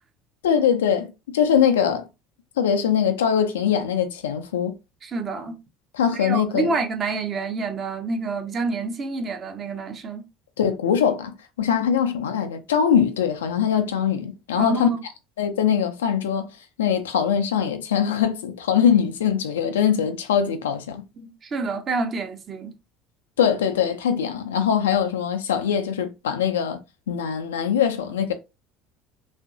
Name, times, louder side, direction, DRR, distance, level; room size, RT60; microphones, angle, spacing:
voice 1, 0.4-2.1 2.6-4.8 5.9-6.7 10.6-14.9 15.4-21.0 23.4-26.8 27.1-28.3, left 8 dB, 70° left, 0.4 m, -22 dB
voice 2, 5.0-5.6 6.1-10.3 14.6-15.0 21.2-22.7, right 3 dB, 35° right, 0.6 m, -28 dB
2.9 x 2.5 x 2.4 m
figure-of-eight pair, 65°, 0 cm